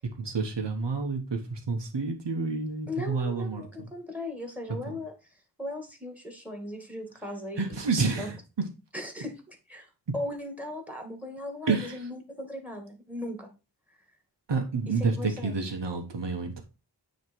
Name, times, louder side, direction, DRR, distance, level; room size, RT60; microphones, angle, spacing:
voice 1, 0.2-3.9 4.9-5.0 7.6-8.4 11.7-12.0 14.5-16.6, right 4 dB, 80° right, 3 dB, 1.3 m, -29 dB
voice 2, 2.9-5.1 5.6-7.9 8.2-8.3 8.9-9.9 10.1-13.5 14.9-15.6, left 1 dB, 5° right, 4 dB, 2.2 m, -38 dB
9.4 x 3.3 x 4.6 m, 0.31 s
wide cardioid pair, 60°, 42 cm